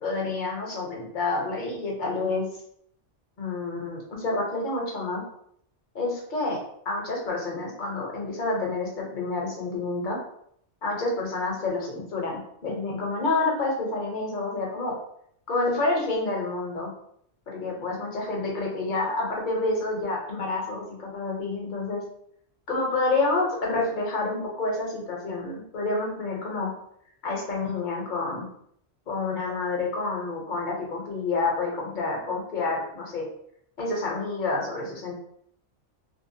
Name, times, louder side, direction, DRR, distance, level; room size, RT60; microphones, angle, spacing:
voice 1, 0.0-2.5 3.4-5.2 5.9-10.2 10.8-14.9 15.5-16.9 17.5-22.0 22.7-26.7 27.2-28.4 29.1-33.3 33.8-35.1, left 3 dB, 45° left, -2 dB, 0.8 m, -28 dB
2.7 x 2.1 x 2.6 m, 0.68 s
omnidirectional pair, 1.2 m